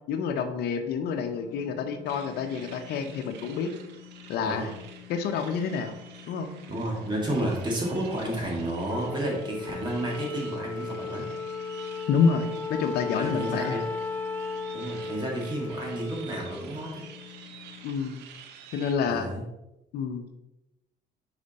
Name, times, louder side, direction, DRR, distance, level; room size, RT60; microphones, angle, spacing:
voice 1, 0.1-3.7 4.3-4.7 5.1-6.0 6.3-6.5 12.1-13.8 17.8-18.2 18.7-19.3 19.9-20.4, left 6 dB, 70° left, 7 dB, 0.8 m, -28 dB
sound 1, 1.0-17.9, left 13 dB, 45° left, 0.9 m, -49 dB
sound 2, 2.1-18.9, right 7 dB, 85° right, 0.8 m, -49 dB
voice 2, 6.7-11.3 13.2-13.8 14.7-17.0 19.0-19.4, right 1 dB, 25° right, -2 dB, 2.1 m, -31 dB
Wind instrument woodwind instrument, 8.9-17.5, left 3 dB, 10° left, 0.4 m, -36 dB
5.0 x 5.0 x 4.2 m, 0.92 s
cardioid pair, 110°, 17 cm